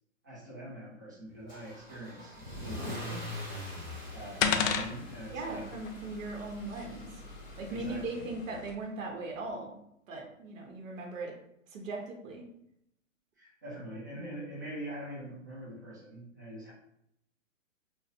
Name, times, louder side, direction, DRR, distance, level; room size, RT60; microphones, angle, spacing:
voice 1, 0.2-3.3 4.1-5.7 7.7-8.3 13.4-16.7, right 1 dB, 15° right, -8 dB, 0.3 m, -44 dB
Car / Engine starting / Accelerating revving vroom, 1.5-8.6, left 1 dB, ahead, 1.0 m, -44 dB
sound 1, 3.2-8.7, left 6 dB, 80° left, 0.5 m, -36 dB
voice 2, 5.3-7.1 7.6-9.8 10.1-11.3 11.7-12.5, right 2 dB, 75° right, 1 dB, 0.8 m, -39 dB
2.6 x 2.0 x 2.4 m, 0.76 s
hypercardioid pair, 150°, 40 cm